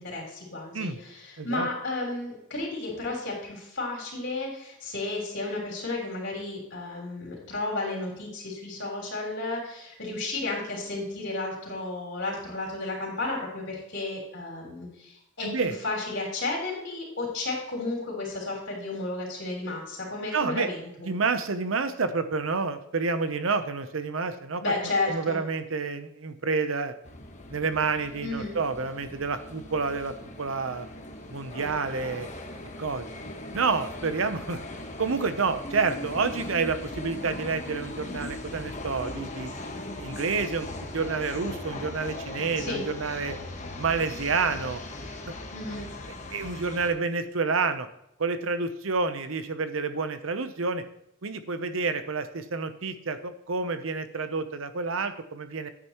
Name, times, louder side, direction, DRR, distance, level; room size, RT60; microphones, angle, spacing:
voice 1, 0.0-21.1 24.6-25.4 28.2-28.5 42.6-42.8 45.5-45.9, left 2 dB, 60° left, -2 dB, 3.8 m, -33 dB
voice 2, 1.4-1.7 15.4-15.7 20.3-20.7 21.0-24.6 25.1-26.9 27.5-30.9 31.3-32.3 32.8-33.1 33.5-34.6 35.0-39.5 40.0-40.7 40.9-43.4 43.8-44.8 45.3-45.4 46.3-47.9 48.2-50.8 51.2-55.7, right 4 dB, 70° right, 10 dB, 0.8 m, -29 dB
sound 1, 27.0-46.9, left 1 dB, 35° left, 1.1 m, -39 dB
9.8 x 8.9 x 3.0 m, 0.80 s
head